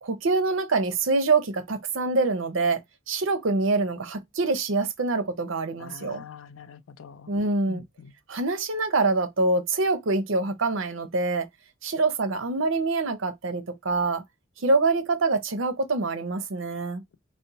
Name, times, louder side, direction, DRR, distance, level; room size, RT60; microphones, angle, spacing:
voice 1, 0.0-2.8 3.1-6.2 7.3-7.8 8.3-11.5 11.8-14.2 14.6-17.0, right 3 dB, 75° right, 0.7 m, -25 dB
voice 2, 5.8-7.3 7.7-8.1, left 6 dB, 80° left, 0.4 m, -44 dB
4.2 x 2.1 x 3.9 m
head